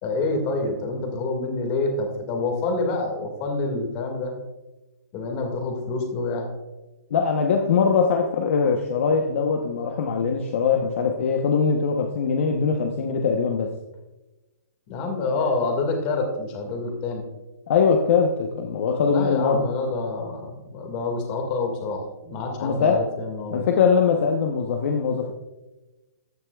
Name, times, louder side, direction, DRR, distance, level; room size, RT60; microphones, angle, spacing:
voice 1, 0.0-4.3 5.1-6.5 14.9-17.2 19.0-23.7, left 3 dB, 25° left, 3 dB, 2.0 m, -27 dB
voice 2, 7.1-13.7 17.7-19.6 22.6-23.0 23.5-25.3, left 5 dB, 50° left, 3 dB, 0.9 m, -22 dB
14.5 x 9.4 x 2.4 m, 1.1 s
hypercardioid pair, 170°, 9 cm